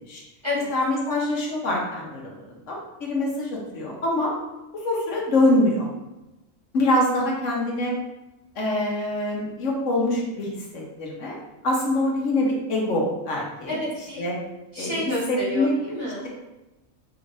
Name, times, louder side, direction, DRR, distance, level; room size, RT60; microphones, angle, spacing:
voice 1, 0.7-2.3 2.7-4.3 4.7-5.9 6.7-7.9 8.6-11.4 11.6-13.8 14.2-14.3 14.8-15.0 15.3-15.7 16.0-16.3, left 1 dB, 70° left, -2 dB, 1.2 m, -24 dB
voice 2, 13.7-14.3 14.7-16.3, left 1 dB, 20° right, -8 dB, 1.3 m, -29 dB
4.9 x 3.3 x 2.6 m, 1.0 s
omnidirectional pair, 1.4 m